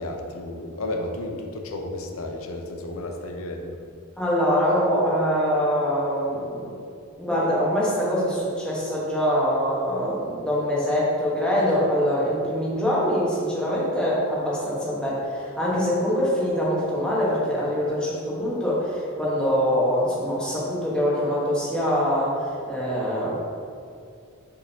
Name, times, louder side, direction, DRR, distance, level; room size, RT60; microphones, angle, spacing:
voice 1, 0.0-3.8, left 1 dB, 80° left, 3 dB, 0.7 m, -32 dB
voice 2, 4.2-6.8 7.2-23.4, equal, 5° left, -8 dB, 1.3 m, -24 dB
6.6 x 5.1 x 2.9 m, 2.3 s
head